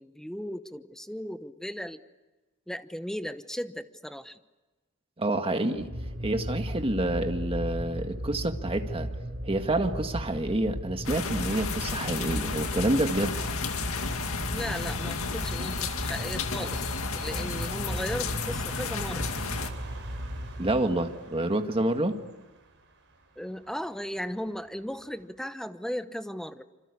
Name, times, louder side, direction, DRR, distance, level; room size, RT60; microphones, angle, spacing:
voice 1, 0.0-2.0 2.7-4.4 14.5-16.9 17.1-19.3 23.4-26.6, equal, ahead, 11 dB, 1.0 m, -36 dB
voice 2, 5.2-5.9 6.2-9.1 9.4-13.3 20.6-22.2, right 1 dB, 25° right, 6 dB, 1.8 m, -28 dB
sound 1, 5.7-21.1, equal, 40° right, 5.9 m, -36 dB
sound 2, 11.0-19.7, left 4 dB, 70° left, 2.2 m, -33 dB
sound 3, 15.7-25.3, right 3 dB, 55° right, 7.0 m, -53 dB
27.0 x 26.0 x 8.4 m, 1.2 s
head